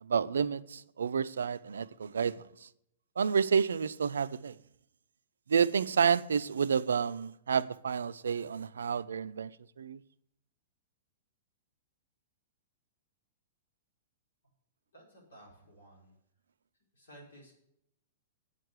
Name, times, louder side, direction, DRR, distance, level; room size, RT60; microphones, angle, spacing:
voice 1, 0.0-2.7 3.2-4.6 5.5-10.0, right 6 dB, 70° right, 0.4 m, -30 dB
voice 2, 14.9-16.2 16.9-17.5, right 1 dB, 75° left, 5.0 m, -55 dB
8.9 x 6.6 x 8.0 m
figure-of-eight pair, 105°, 0 cm